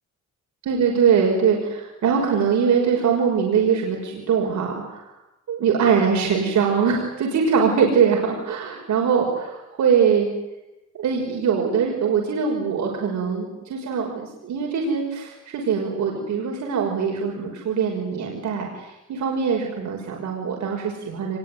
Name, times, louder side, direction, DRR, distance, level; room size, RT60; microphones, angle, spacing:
voice 1, 0.7-5.0 5.5-10.3 10.9-21.4, right 6 dB, 70° right, 0 dB, 6.0 m, -22 dB
24.5 x 22.0 x 9.5 m, 0.92 s
cardioid pair, 90°, 30 cm